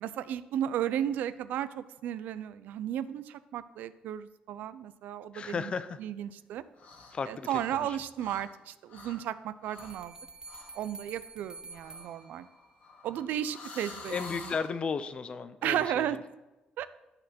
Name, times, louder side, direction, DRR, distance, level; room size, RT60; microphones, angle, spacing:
voice 1, 0.0-5.7 6.0-6.6 7.3-10.1 10.8-12.5 13.0-14.2 14.4-14.5 15.6-16.2 16.8-16.9, right 10 dB, 80° right, 15 dB, 0.4 m, -34 dB
voice 2, 5.3-6.0 7.1-8.0 14.1-16.1, left 5 dB, 35° left, 12 dB, 0.5 m, -34 dB
sound 1, 6.7-7.2 7.4-8.6 8.9-9.2 9.6-10.0 10.5-10.7 11.7-14.7, left 3 dB, 65° left, 1.6 m, -47 dB
sound 2, 9.8-12.9, right 3 dB, 25° right, 0.6 m, -49 dB
12.5 x 4.3 x 4.3 m, 1.1 s
cardioid pair, 125°, 3 cm